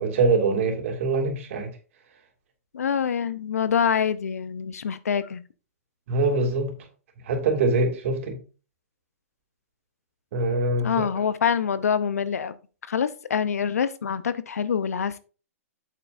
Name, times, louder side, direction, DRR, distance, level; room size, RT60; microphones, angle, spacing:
voice 1, 0.0-1.7 6.1-6.7 7.2-8.4 10.3-11.1, right 3 dB, 60° right, 2.8 m, -23 dB
voice 2, 2.7-5.4 10.8-12.6 12.9-15.2, left 7 dB, 80° left, 0.8 m, -25 dB
8.4 x 7.7 x 2.7 m
hypercardioid pair, 130°, 8 cm